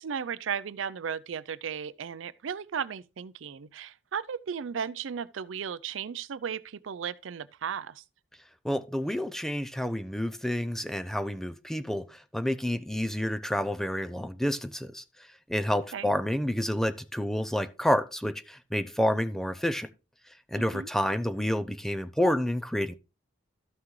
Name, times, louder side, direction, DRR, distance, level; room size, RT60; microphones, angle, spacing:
voice 1, 0.0-8.0 15.9-16.1 20.6-20.9, right 7 dB, 85° right, 0.5 m, -35 dB
voice 2, 8.6-15.0 15.5-19.9 20.5-22.9, equal, ahead, 0.6 m, -29 dB
13.0 x 5.9 x 3.1 m
head